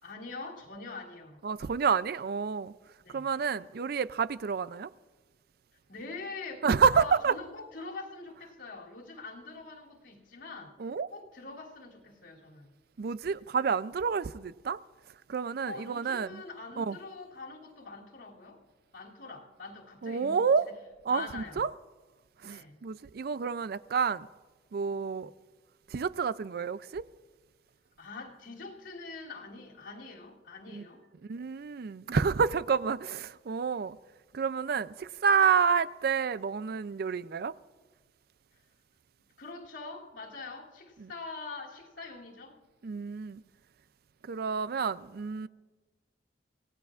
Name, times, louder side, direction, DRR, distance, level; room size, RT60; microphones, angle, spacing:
voice 1, 0.0-1.4 3.0-3.3 5.9-6.6 6.9-10.7 11.1-12.7 15.6-18.6 18.9-20.5 21.1-21.6 22.4-22.8 25.2-25.3 28.0-31.0 39.4-42.6, left 3 dB, 90° left, 2.9 m, -44 dB
voice 2, 1.4-2.7 3.1-4.9 6.6-7.3 10.8-11.1 13.0-14.8 15.3-16.4 16.8-17.0 20.0-20.7 21.1-21.7 22.4-24.3 24.7-25.3 25.9-27.0 30.7-30.8 31.3-34.0 34.3-37.5 41.0-41.1 42.8-43.4 44.3-45.5, right 6 dB, 55° right, 0.4 m, -29 dB
25.5 x 17.5 x 2.5 m
head